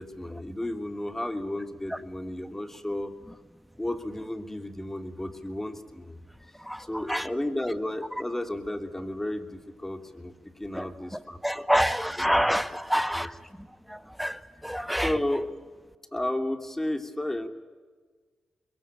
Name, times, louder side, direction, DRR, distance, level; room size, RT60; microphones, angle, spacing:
voice 1, 0.0-3.4 3.8-6.2 6.8-11.7 13.1-13.3 15.0-15.5 16.1-17.5, left 1 dB, 15° left, 6 dB, 3.0 m, -33 dB
voice 2, 6.6-7.3 10.7-15.1, equal, ahead, 12 dB, 1.4 m, -28 dB
23.5 x 22.0 x 8.9 m, 1.4 s
supercardioid pair, 40°, 2 cm